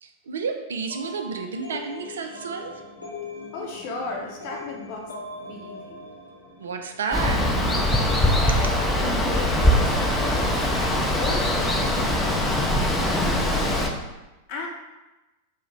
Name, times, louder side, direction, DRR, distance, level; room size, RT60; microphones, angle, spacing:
voice 1, 0.0-2.8 6.6-7.5, right 5 dB, 65° right, 5 dB, 0.3 m, -31 dB
sound 1, 0.9-13.5, equal, 85° left, 1.0 m, -40 dB
voice 2, 3.5-5.1 5.4-6.0 8.4-8.5 9.0-12.4 12.7-13.9 14.5-14.7, left 3 dB, 45° left, 0 dB, 0.7 m, -36 dB
Water, 7.1-13.9, left 1 dB, 10° left, 0.5 m, -22 dB
4.5 x 2.1 x 3.0 m, 1.1 s
figure-of-eight pair, 90°, 0 cm